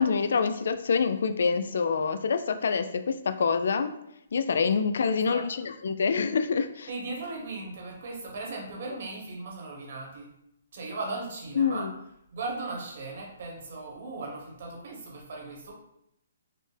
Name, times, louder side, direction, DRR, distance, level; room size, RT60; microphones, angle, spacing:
voice 1, 0.0-3.9 4.3-6.9 11.6-11.9, left 5 dB, 70° left, 9 dB, 0.3 m, -26 dB
voice 2, 5.1-5.5 6.9-10.3 10.7-11.9 12.3-15.7, right 3 dB, 55° right, -1 dB, 1.1 m, -37 dB
4.1 x 2.0 x 3.3 m, 0.80 s
hypercardioid pair, 160°, 0 cm